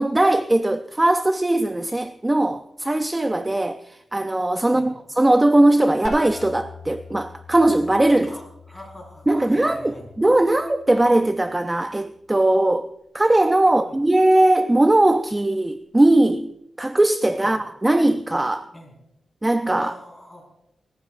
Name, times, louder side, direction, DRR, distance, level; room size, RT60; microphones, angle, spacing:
voice 1, 0.0-8.4 9.3-12.9 13.1-16.5 16.8-18.7 19.4-19.9, right 1 dB, 15° right, 0.5 m, -19 dB
sound 1, 6.0-11.6, left 3 dB, 45° left, 4.4 m, -41 dB
voice 2, 8.2-10.1 13.8-14.0 17.4-17.5 18.7-18.9 19.8-20.5, left 1 dB, 10° left, 4.9 m, -42 dB
28.5 x 15.0 x 2.6 m
wide cardioid pair, 135°, 0 cm